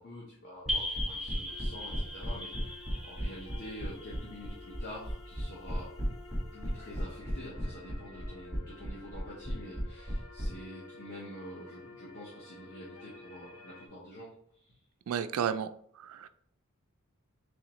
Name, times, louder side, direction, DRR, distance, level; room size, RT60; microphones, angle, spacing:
voice 1, 0.0-5.9 6.5-14.3 14.6-14.7, equal, 45° left, -5 dB, 0.9 m, -47 dB
sound 1, 0.7-10.5, equal, 15° left, 1.5 m, -35 dB
sound 2, 0.7-5.1, left 1 dB, ahead, 0.6 m, -39 dB
sound 3, 1.5-13.9, left 3 dB, 85° left, 0.6 m, -52 dB
voice 2, 15.1-15.7 16.0-16.3, right 8 dB, 75° right, 12 dB, 0.3 m, -32 dB
3.6 x 3.5 x 3.0 m, 0.63 s
head